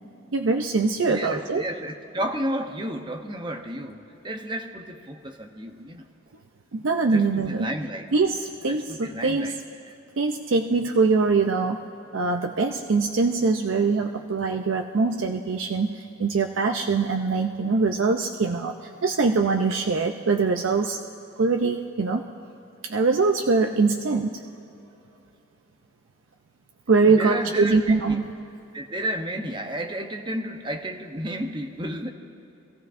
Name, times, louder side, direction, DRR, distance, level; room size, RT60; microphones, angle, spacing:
voice 1, 0.3-1.6 6.7-7.7 8.1-9.5 10.2-11.8 12.1-18.7 19.0-21.0 21.4-22.3 22.8-24.4 26.9-28.3, right 4 dB, 75° right, 3 dB, 0.5 m, -23 dB
voice 2, 1.1-6.1 7.1-8.0 8.7-9.5 27.0-27.8 28.1-28.2 28.7-32.1, right 1 dB, 25° right, 4 dB, 0.7 m, -32 dB
25.0 x 15.0 x 2.5 m, 2.8 s
head